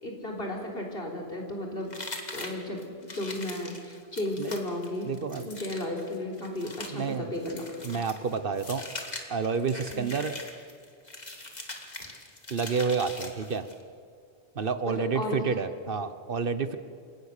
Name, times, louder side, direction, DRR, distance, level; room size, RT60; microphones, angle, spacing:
voice 1, 0.0-2.0 2.3-5.1 5.4-7.7 9.9-10.1 14.8-15.4, left 1 dB, 65° left, 0 dB, 4.0 m, -34 dB
sound 1, 1.9-13.8, left 2 dB, 40° left, 2.3 m, -42 dB
voice 2, 5.0-5.5 6.9-7.3 7.8-8.8 9.3-10.3 12.5-13.7 14.5-16.8, right 5 dB, 60° right, 11 dB, 1.1 m, -29 dB
28.0 x 17.0 x 6.7 m, 2.4 s
omnidirectional pair, 1.1 m